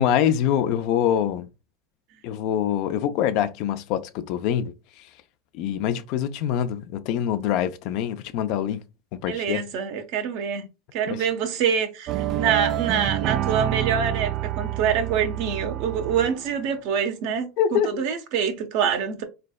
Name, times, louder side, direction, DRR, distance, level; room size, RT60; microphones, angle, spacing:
voice 1, 0.0-1.5 2.2-5.1 5.5-8.8 9.1-9.6 11.1-11.2 17.6-18.0, left 10 dB, 65° left, 0.5 m, -25 dB
voice 2, 9.3-19.2, right 7 dB, 65° right, 0.9 m, -26 dB
sound 1, 12.1-16.6, right 12 dB, 50° right, 0.3 m, -27 dB
4.0 x 3.3 x 2.2 m
hypercardioid pair, 100°, 0 cm